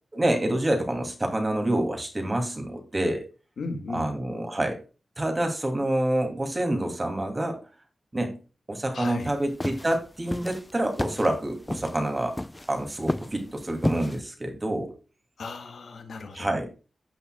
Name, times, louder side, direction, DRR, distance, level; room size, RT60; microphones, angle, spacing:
voice 1, 0.1-3.2 3.9-4.8 5.2-7.6 8.1-8.4 8.7-12.3 12.7-14.9 16.3-16.7, right 1 dB, 20° right, 4 dB, 2.4 m, -27 dB
voice 2, 3.6-4.1 8.9-9.3 15.4-16.5, left 3 dB, 70° left, 5 dB, 1.8 m, -36 dB
sound 1, 9.2-14.2, left 1 dB, 15° left, 0.4 m, -32 dB
15.5 x 5.7 x 2.2 m, 0.32 s
wide cardioid pair, 120°, 0 cm